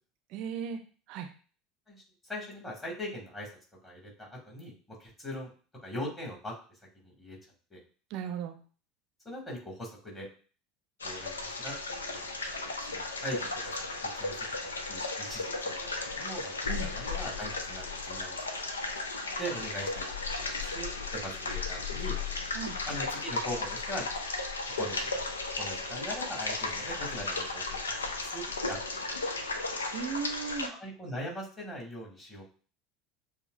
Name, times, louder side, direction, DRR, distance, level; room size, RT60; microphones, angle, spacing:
voice 1, 0.3-0.8 1.1-1.3 8.1-8.6 16.7-16.9 22.5-22.8 29.9-30.7, right 7 dB, 50° right, 6 dB, 0.5 m, -36 dB
voice 2, 1.9-3.5 3.8-5.5 5.8-6.5 7.0-7.4 7.7-7.8 9.2-10.3 11.0-12.2 12.5-18.4 19.4-22.2 22.9-24.1 24.8-25.3 25.6-29.4 30.8-32.5, equal, 20° left, -4 dB, 2.2 m, -41 dB
sound 1, 11.0-30.7, left 3 dB, 80° left, 0.5 m, -35 dB
6.8 x 2.3 x 2.6 m, 0.39 s
figure-of-eight pair, 70°, 0 cm